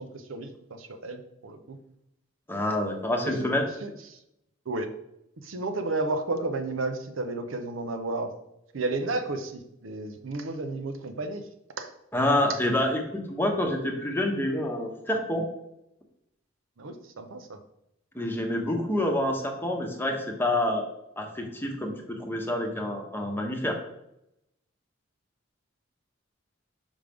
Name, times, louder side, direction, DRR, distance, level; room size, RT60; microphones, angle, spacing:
voice 1, 0.0-1.8 3.2-3.5 3.8-3.9 4.7-4.9 5.4-8.3 8.7-11.4 11.8-11.9 16.8-17.6, right 2 dB, 75° right, 6 dB, 0.7 m, -32 dB
voice 2, 2.5-3.7 12.1-15.4 18.1-20.8 21.2-23.8, left 1 dB, 10° left, 2 dB, 0.9 m, -27 dB
6.3 x 5.2 x 3.5 m, 0.82 s
head